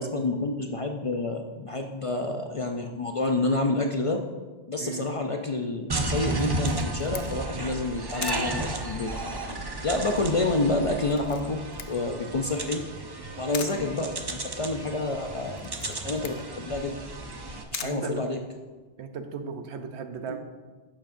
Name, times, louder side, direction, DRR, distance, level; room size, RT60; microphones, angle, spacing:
voice 1, 0.0-4.2 4.7-9.1 9.5-9.6 9.8-11.6 11.9-12.8 13.4-17.0 17.7-18.4 20.3-20.4, left 2 dB, 45° left, 3 dB, 0.4 m, -29 dB
sound 1, 5.9-17.6, right 2 dB, 30° right, 0.6 m, -33 dB
Camera, 6.4-18.9, left 9 dB, 70° left, 0.8 m, -44 dB
voice 2, 13.6-13.9 17.7-18.2 19.0-20.4, right 6 dB, 90° right, 7 dB, 1.0 m, -36 dB
11.0 x 7.1 x 2.6 m, 1.3 s
omnidirectional pair, 1.1 m